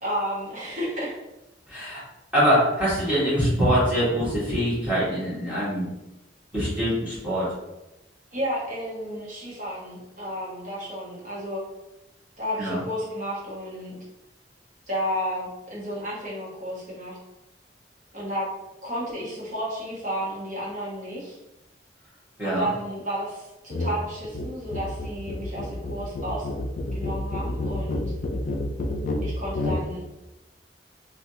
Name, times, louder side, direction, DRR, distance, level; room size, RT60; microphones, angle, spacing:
voice 1, 0.0-1.2 8.3-11.6 12.4-14.0 14.9-17.2 18.1-18.5 18.8-21.4 22.4-26.5 26.9-28.0 28.7-28.8 29.2-30.0, equal, 45° right, -6 dB, 1.1 m, -32 dB
voice 2, 1.7-2.0 2.3-5.9 6.5-7.5 12.6-12.8 22.4-22.7, equal, 10° right, -11 dB, 1.3 m, -23 dB
sound 1, 23.7-24.0 24.2-29.9, left 1 dB, 45° left, 0.4 m, -29 dB
3.2 x 2.4 x 2.7 m, 0.97 s
head